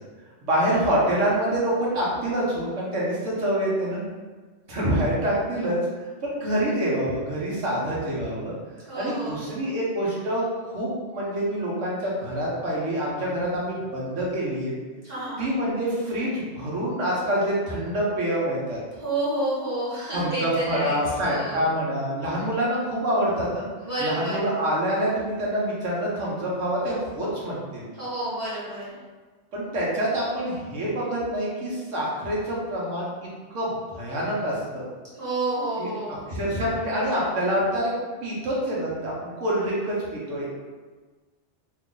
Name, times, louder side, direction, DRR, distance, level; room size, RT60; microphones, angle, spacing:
voice 1, 0.4-4.0 4.7-5.8 6.2-8.5 8.9-14.7 15.4-18.8 20.1-23.7 24.0-27.9 29.5-33.1 33.5-34.8 35.8-37.9 38.2-40.5, right 1 dB, 90° right, -5 dB, 1.3 m, -26 dB
voice 2, 8.9-9.7 15.0-15.4 19.0-21.7 23.8-24.5 28.0-28.9 35.2-36.2, right 1 dB, 55° right, -10 dB, 1.5 m, -30 dB
3.1 x 2.4 x 3.8 m, 1.4 s
omnidirectional pair, 1.2 m